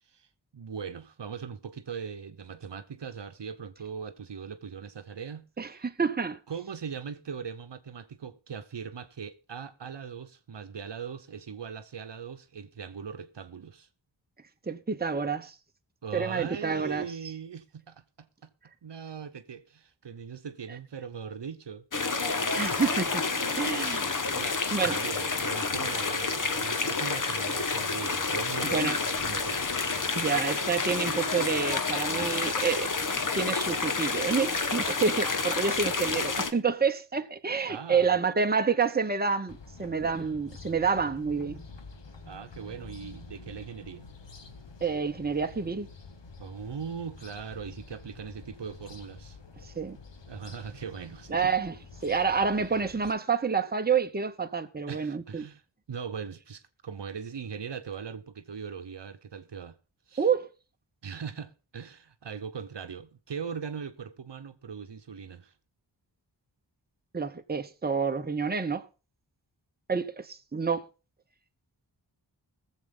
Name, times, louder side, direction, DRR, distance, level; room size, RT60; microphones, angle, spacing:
voice 1, 0.5-5.8 6.5-13.9 16.0-18.5 18.8-21.9 22.4-22.8 23.4-29.6 37.7-38.1 42.2-44.1 46.4-49.4 50.3-51.5 54.9-55.6 55.9-59.8 60.1-60.3 61.0-65.5, right 6 dB, 70° right, 0.9 m, -40 dB
voice 2, 5.6-6.4 14.7-15.5 16.1-17.1 22.4-23.2 23.5-24.1 24.7-25.0 28.7-29.0 30.2-32.9 33.3-41.6 44.8-45.9 49.6-50.0 51.3-51.7 52.0-55.5 60.2-60.5 67.1-68.9 69.9-70.9, right 5 dB, 20° right, 0.9 m, -28 dB
sound 1, 21.9-36.5, left 4 dB, 45° left, 1.0 m, -29 dB
sound 2, 39.5-53.1, left 4 dB, 75° left, 1.5 m, -48 dB
21.0 x 7.5 x 3.8 m
wide cardioid pair, 75°, 44 cm